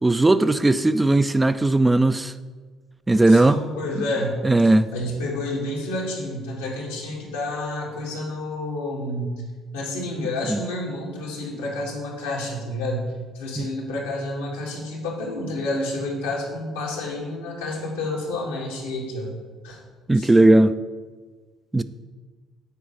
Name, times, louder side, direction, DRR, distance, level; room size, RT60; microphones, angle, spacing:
voice 1, 0.0-2.3 3.1-3.6 4.4-4.9 10.5-10.6 13.6-13.7 20.1-20.7 21.7-21.8, right 2 dB, 15° right, 0.4 m, -17 dB
voice 2, 3.3-4.5 4.9-9.4 9.7-19.3 19.6-19.8 20.1-20.3, left 1 dB, 90° left, 2.2 m, -29 dB
8.1 x 4.7 x 6.9 m
hypercardioid pair, 55°, 0 cm